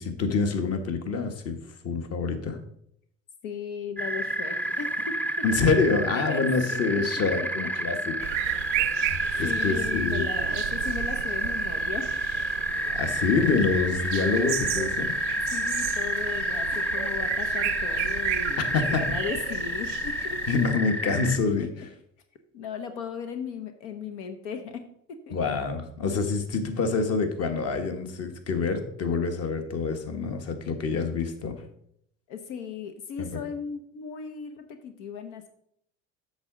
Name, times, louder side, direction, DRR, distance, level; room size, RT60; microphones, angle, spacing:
voice 1, 0.0-1.6 1.8-2.6 5.4-8.6 9.4-10.2 12.9-15.1 18.7-19.0 20.5-21.9 25.3-31.6 33.2-33.3, left 4 dB, 45° left, 7 dB, 1.4 m, -26 dB
voice 2, 3.4-5.1 6.1-7.0 8.8-8.9 9.4-12.1 15.5-20.4 22.5-25.4 32.3-35.5, left 6 dB, 90° left, 7 dB, 1.0 m, -37 dB
sound 1, 4.0-21.4, right 1 dB, 5° left, 0.4 m, -29 dB
sound 2, 8.2-20.7, right 19 dB, 80° right, 0.5 m, -35 dB
8.1 x 6.7 x 3.9 m, 0.70 s
supercardioid pair, 110°, 35 cm